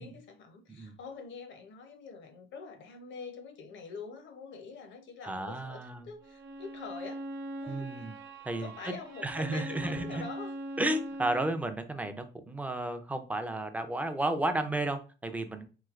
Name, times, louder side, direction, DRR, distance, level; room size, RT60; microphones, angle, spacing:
voice 1, 0.0-7.2 7.6-8.1 8.6-10.5, left 5 dB, 70° left, 0.7 m, -45 dB
voice 2, 5.2-6.1 7.7-8.1 8.4-8.9 9.2-10.2 10.8-15.7, right 1 dB, 5° right, 0.4 m, -33 dB
Bowed string instrument, 6.2-11.6, right 1 dB, 75° right, 0.7 m, -42 dB
3.1 x 2.7 x 2.4 m
cardioid pair, 90°, 20 cm